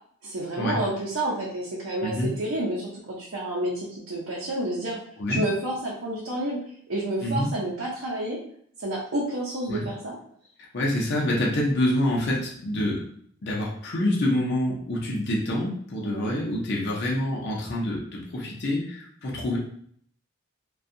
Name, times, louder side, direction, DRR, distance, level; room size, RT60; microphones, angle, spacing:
voice 1, 0.2-5.0 5.3-6.6 6.9-8.4 8.8-10.2 16.0-16.4, right 1 dB, 80° right, -5 dB, 0.6 m, -29 dB
voice 2, 2.0-2.3 5.2-5.5 7.2-7.5 9.7-9.9 10.7-13.1 13.4-19.6, left 1 dB, 55° left, -3 dB, 0.6 m, -26 dB
2.6 x 2.3 x 2.6 m, 0.63 s
head